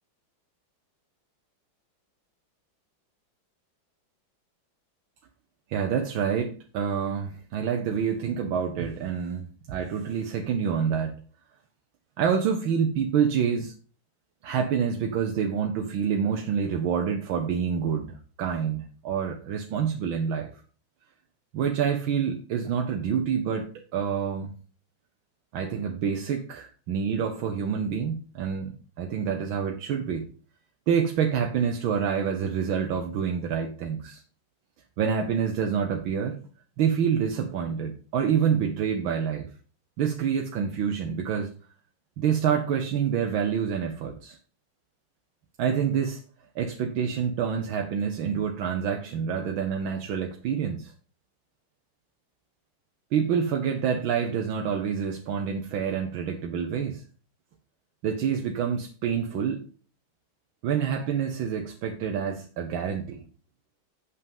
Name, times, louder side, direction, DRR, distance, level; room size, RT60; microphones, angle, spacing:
voice 1, 5.7-11.2 12.2-13.7 14.4-20.5 21.5-24.5 25.5-30.3 30.9-34.2 35.0-36.4 36.8-39.5 40.0-41.5 42.2-44.4 45.6-46.2 46.5-50.9 53.1-57.0 58.0-59.6 60.6-63.2, right 7 dB, 85° right, 3 dB, 1.8 m, -27 dB
8.0 x 5.7 x 5.3 m, 0.39 s
omnidirectional pair, 2.1 m